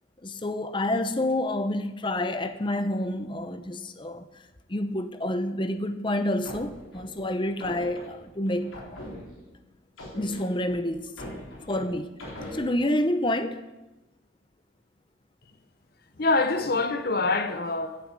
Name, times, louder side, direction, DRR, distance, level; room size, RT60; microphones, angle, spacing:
voice 1, 0.2-4.3 4.7-9.0 10.2-11.1 11.7-12.1 12.5-13.6, left 1 dB, 25° left, 0.6 m, -28 dB
sound 1, 6.2-9.6 10.0-12.6, left 1 dB, 90° left, 4.1 m, -41 dB
voice 2, 16.2-18.0, left 3 dB, 50° left, 0.9 m, -25 dB
15.5 x 7.8 x 5.3 m
head